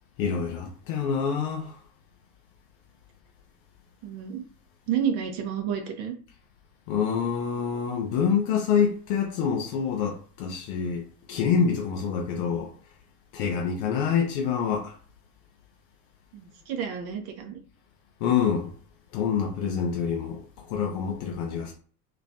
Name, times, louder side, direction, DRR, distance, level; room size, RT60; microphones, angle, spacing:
voice 1, 0.2-1.8 6.9-12.7 13.3-14.9 18.2-18.7 19.1-20.4 20.7-21.7, left 7 dB, 30° left, 0.4 m, -26 dB
voice 2, 4.0-4.4 4.9-6.1 16.3-17.6, right 8 dB, 40° right, 0.5 m, -30 dB
2.4 x 2.3 x 2.2 m
figure-of-eight pair, 80°, 50 cm